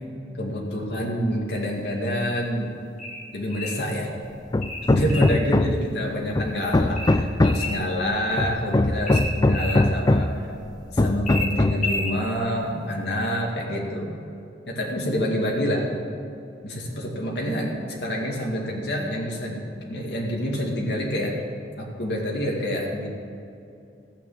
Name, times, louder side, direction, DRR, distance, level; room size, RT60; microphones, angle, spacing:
voice 1, 0.4-2.7 3.3-4.1 4.9-10.4 10.9-14.1 14.7-15.9 16.6-21.3 21.8-23.1, equal, 65° left, -2 dB, 2.2 m, -27 dB
sound 1, 3.0-3.8 4.6-5.4 7.0-7.8 9.1-9.8 11.3-12.2, left 2 dB, 45° left, 1.9 m, -31 dB
Hammer, 4.5-5.9 6.4-7.8 8.4-10.4 11.0-11.9, left 2 dB, 20° left, 0.4 m, -21 dB
16.0 x 7.0 x 7.4 m, 2.6 s
head